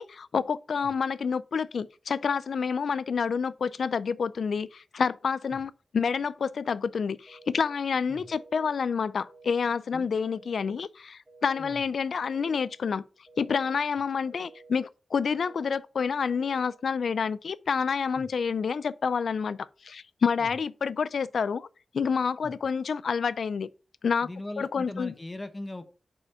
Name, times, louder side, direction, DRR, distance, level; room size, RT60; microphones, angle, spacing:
voice 1, 0.0-13.0 13.4-21.7 21.9-23.7 24.0-24.3 24.6-25.1, left 6 dB, 70° left, 0.3 m, -28 dB
sound 1, 7.3-7.8 8.3-8.8 9.3-9.8 10.3-10.8 11.3-11.8 12.3-12.8 13.3-13.8 14.3-14.8 15.3-15.8 16.3-16.8, right 3 dB, 40° right, 2.0 m, -53 dB
voice 2, 24.2-25.9, left 2 dB, 20° left, 0.8 m, -39 dB
5.0 x 4.9 x 5.5 m
wide cardioid pair, 130°, 0 cm